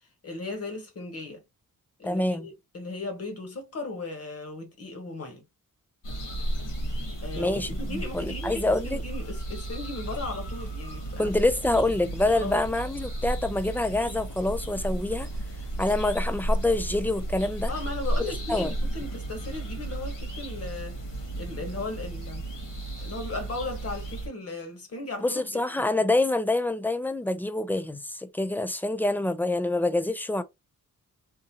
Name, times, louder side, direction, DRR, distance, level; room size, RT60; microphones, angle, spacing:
voice 1, 0.2-1.4 2.0-5.4 7.2-11.3 12.4-12.6 17.7-21.0 21.4-22.5 23.0-25.9, left 2 dB, 45° left, 1.2 m, -37 dB
voice 2, 2.0-2.5 7.4-9.0 11.2-15.3 15.8-17.7 18.5-18.7 25.2-30.4, left 2 dB, 5° left, 0.3 m, -26 dB
sound 1, 6.0-24.3, right 1 dB, 75° left, 1.8 m, -33 dB
3.7 x 2.6 x 2.8 m
wide cardioid pair, 135°, 33 cm